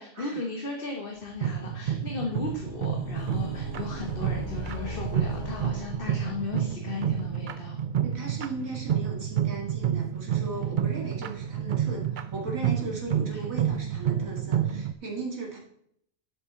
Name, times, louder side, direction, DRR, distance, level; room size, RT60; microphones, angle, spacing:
voice 1, 0.0-7.8 13.3-13.5, left 3 dB, 45° left, 1 dB, 1.4 m, -36 dB
sound 1, 1.4-14.9, right 9 dB, 55° right, 0.5 m, -29 dB
sound 2, 2.1-6.8, left 1 dB, 15° right, 2.9 m, -39 dB
voice 2, 8.0-15.6, right 3 dB, 80° right, -1 dB, 2.5 m, -37 dB
11.5 x 8.3 x 3.9 m, 0.69 s
omnidirectional pair, 1.4 m